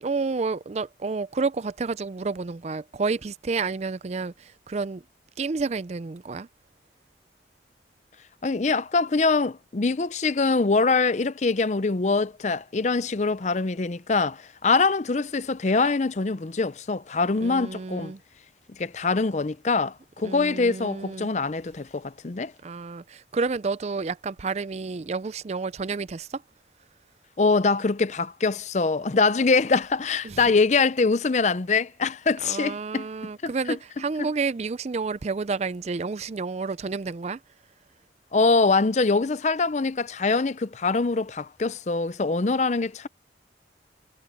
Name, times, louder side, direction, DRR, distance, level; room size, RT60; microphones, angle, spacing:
voice 1, 0.0-5.0 5.4-6.5 17.4-18.2 20.2-21.3 22.6-26.4 30.2-30.4 32.4-37.4, right 4 dB, 35° right, 0.4 m, -30 dB
voice 2, 8.4-18.1 18.8-22.5 27.4-33.1 34.2-34.3 38.3-43.1, left 4 dB, 40° left, 0.5 m, -24 dB
head